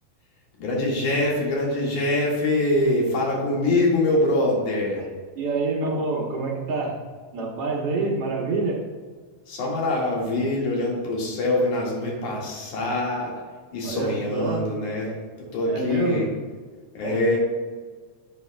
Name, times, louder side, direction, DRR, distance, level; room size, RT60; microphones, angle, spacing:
voice 1, 0.6-5.0 9.5-13.3 13.7-16.3 16.9-17.4, left 2 dB, 90° left, -3 dB, 3.4 m, -24 dB
voice 2, 5.4-7.0 7.3-8.8 13.8-14.7 15.7-16.2 17.0-17.2, right 3 dB, 60° right, -2 dB, 2.1 m, -27 dB
10.0 x 8.4 x 2.3 m, 1.5 s
omnidirectional pair, 3.3 m